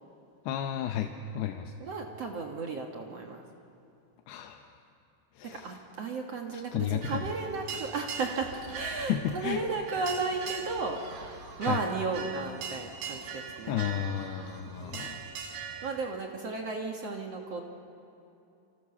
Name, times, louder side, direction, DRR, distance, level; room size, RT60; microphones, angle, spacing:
voice 1, 0.5-1.7 4.3-4.7 5.4-5.7 6.7-7.2 9.1-9.6 11.6-11.8 13.7-15.2, left 10 dB, 90° left, 4 dB, 2.9 m, -32 dB
voice 2, 1.8-3.4 5.4-11.0 11.6-13.8 14.6-15.2 15.8-17.6, right 4 dB, 55° right, 2 dB, 2.0 m, -34 dB
sound 1, 7.0-15.9, right 6 dB, 75° right, 3.9 m, -41 dB
28.0 x 25.0 x 7.0 m, 2.7 s
omnidirectional pair, 4.5 m